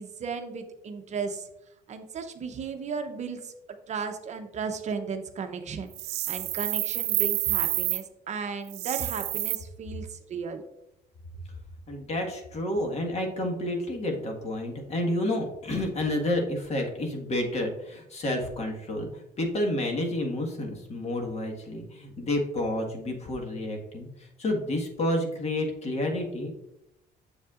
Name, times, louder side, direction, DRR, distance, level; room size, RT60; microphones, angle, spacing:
voice 1, 0.0-1.5 1.9-3.5 3.9-5.9 6.3-10.6, right 5 dB, 45° right, 6 dB, 0.7 m, -35 dB
sound 1, 5.9-8.0 8.7-9.6, right 16 dB, 75° right, 0.5 m, -28 dB
voice 2, 11.9-26.5, left 1 dB, 40° left, 2 dB, 1.6 m, -30 dB
7.3 x 7.1 x 2.4 m, 0.86 s
cardioid pair, 110°, 17 cm